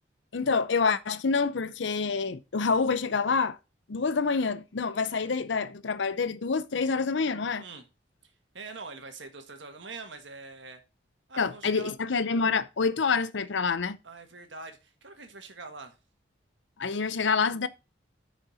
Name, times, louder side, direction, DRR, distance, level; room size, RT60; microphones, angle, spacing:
voice 1, 0.3-3.6 3.9-7.6 11.4-14.0 16.8-17.7, left 5 dB, 75° left, 0.6 m, -27 dB
voice 2, 8.2-10.8 11.3-11.9 14.0-16.0, right 3 dB, 75° right, 1.6 m, -44 dB
10.0 x 5.2 x 4.2 m
head